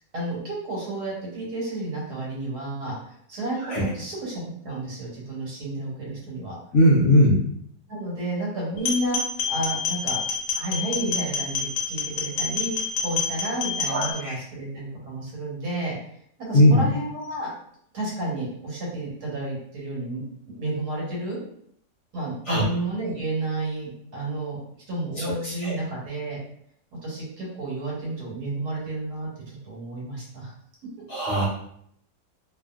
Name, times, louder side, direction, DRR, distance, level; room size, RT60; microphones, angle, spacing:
voice 1, 0.1-2.9 3.3-6.5 7.9-9.2 9.5-10.2 10.6-15.9 16.5-17.5 17.9-20.2 20.6-21.4 22.1-24.6 24.9-26.4 27.0-30.5, right 1 dB, 70° right, -5 dB, 1.5 m, -31 dB
voice 2, 6.7-7.4 13.9-14.4 16.5-16.9 22.5-22.6 25.2-25.8 31.1-31.5, equal, 60° left, -6 dB, 0.8 m, -19 dB
sound 1, 8.8-14.1, left 5 dB, 85° left, 1.2 m, -27 dB
2.9 x 2.5 x 2.3 m, 0.69 s
omnidirectional pair, 1.8 m